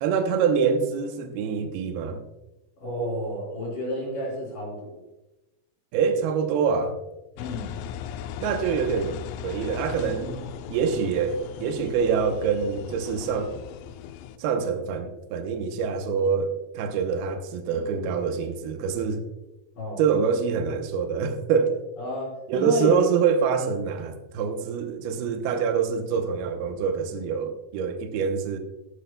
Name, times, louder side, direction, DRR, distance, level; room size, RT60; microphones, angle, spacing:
voice 1, 0.0-2.2 5.9-7.0 8.4-9.2 9.4-13.5 14.4-19.2 20.0-21.8 22.5-28.6, right 6 dB, 80° right, 6 dB, 2.8 m, -25 dB
voice 2, 2.8-5.0 7.4-7.7 19.8-20.0 22.0-23.0, left 1 dB, 55° left, -2 dB, 5.5 m, -30 dB
Engine, 7.4-14.4, left 9 dB, 80° left, 2.1 m, -38 dB
13.0 x 10.5 x 2.3 m, 0.98 s
omnidirectional pair, 4.6 m